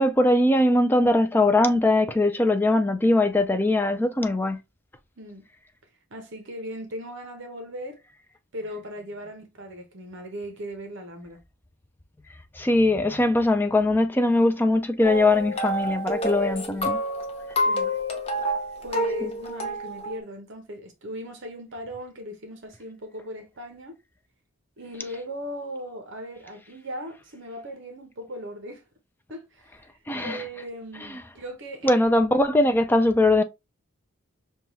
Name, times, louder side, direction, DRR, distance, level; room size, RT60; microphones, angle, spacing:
voice 1, 0.0-4.6 12.6-17.0 30.1-30.4 31.8-33.4, left 2 dB, 10° left, 0.3 m, -21 dB
voice 2, 6.1-8.0 8.5-11.4 17.6-17.9 18.8-24.0 24.8-28.8 29.3-32.0, equal, 55° right, 0.8 m, -38 dB
sound 1, 15.0-20.2, equal, 25° left, 0.8 m, -28 dB
5.4 x 2.3 x 3.1 m
head